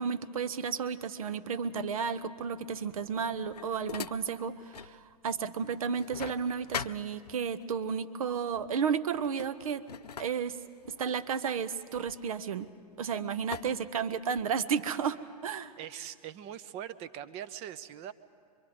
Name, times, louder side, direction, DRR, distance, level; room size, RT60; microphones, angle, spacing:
voice 1, 0.0-9.9 10.2-10.6 10.9-12.7 13.0-15.7, right 6 dB, 60° right, 14 dB, 1.0 m, -32 dB
sound 1, 3.0-5.0 5.4-7.7 8.5-8.8 9.1-13.0 13.5-14.6, left 7 dB, 75° left, 0.6 m, -43 dB
voice 2, 15.8-18.1, right 10 dB, 30° right, 15 dB, 0.8 m, -42 dB
25.0 x 23.5 x 5.0 m, 2.2 s
figure-of-eight pair, 110°, 21 cm